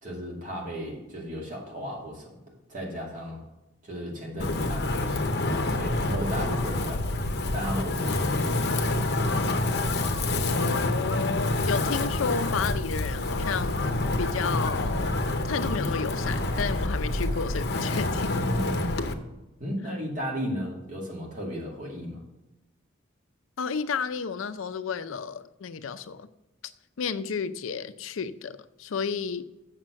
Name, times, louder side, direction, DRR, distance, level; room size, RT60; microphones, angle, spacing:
voice 1, 0.0-2.3 2.7-3.4 3.8-5.4 5.7-7.2 7.5-9.0 18.3-18.9 19.6-22.2, equal, 40° right, -2 dB, 2.4 m, -35 dB
Wind, 4.4-19.1, left 2 dB, 55° left, 0.7 m, -27 dB
voice 2, 10.5-13.9 14.2-15.2 15.4-18.3 23.6-26.3 27.0-29.4, left 6 dB, 85° left, 13 dB, 0.5 m, -32 dB
7.5 x 6.6 x 6.2 m, 0.99 s
head